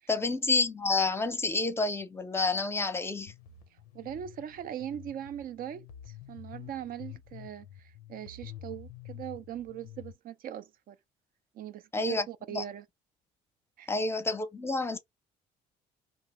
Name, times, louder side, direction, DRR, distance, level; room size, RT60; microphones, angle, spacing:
voice 1, 0.1-3.3 11.9-12.6 13.9-15.0, left 3 dB, 15° left, 0.7 m, -29 dB
sound 1, 3.3-10.1, left 10 dB, 85° left, 0.5 m, -48 dB
voice 2, 3.9-11.0 11.5-12.9 13.8-13.9, right 10 dB, 50° right, 0.5 m, -41 dB
2.8 x 2.1 x 3.0 m
hypercardioid pair, 55°, 19 cm